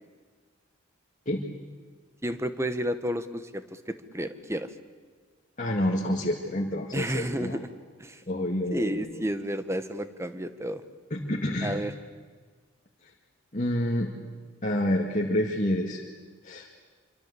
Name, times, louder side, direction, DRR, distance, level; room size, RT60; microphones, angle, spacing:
voice 1, 2.2-4.7 6.9-7.7 8.0-8.2 8.7-10.8 11.6-11.9, equal, 15° right, 11 dB, 1.1 m, -31 dB
voice 2, 5.6-7.6 8.3-9.2 11.1-11.8 13.5-14.1 14.6-16.0 16.4-16.7, left 1 dB, 35° left, 0 dB, 2.0 m, -28 dB
25.5 x 24.5 x 8.4 m, 1.5 s
head